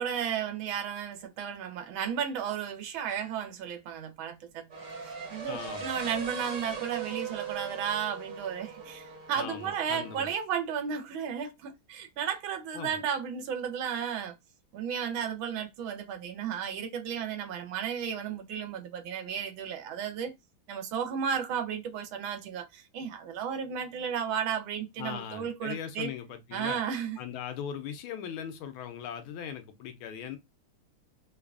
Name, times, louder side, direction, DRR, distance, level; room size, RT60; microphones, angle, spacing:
voice 1, 0.0-4.6 5.0-14.3 14.7-20.3 20.7-26.1 26.5-27.2, right 8 dB, 75° right, 1.5 m, -34 dB
sound 1, 4.7-10.3, right 5 dB, 45° right, 1.5 m, -40 dB
voice 2, 5.5-5.9 9.3-10.3 12.7-13.0 25.0-26.8 27.2-30.4, left 8 dB, 80° left, 1.4 m, -39 dB
5.2 x 2.4 x 2.3 m
omnidirectional pair, 2.3 m